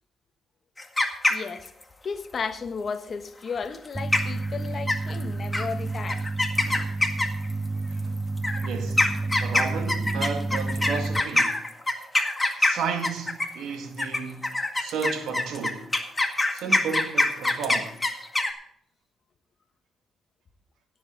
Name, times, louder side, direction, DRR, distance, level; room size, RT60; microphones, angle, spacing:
sound 1, 0.8-1.8 3.7-3.9 4.1-4.5 4.9-5.2 5.5-5.7 6.1-7.5 8.4-13.6 14.0-18.5, left 2 dB, 15° left, 1.9 m, -24 dB
voice 1, 1.3-1.7 2.0-6.3, left 5 dB, 45° left, 1.3 m, -34 dB
sound 2, 3.9-11.2, right 2 dB, 15° right, 0.4 m, -30 dB
voice 2, 6.6-7.0 7.9-8.0 8.6-9.1 9.4-11.6 12.6-14.5 14.8-15.9 16.5-18.0, right 6 dB, 80° right, 1.9 m, -33 dB
17.0 x 7.9 x 3.9 m
cardioid pair, 85°, 0 cm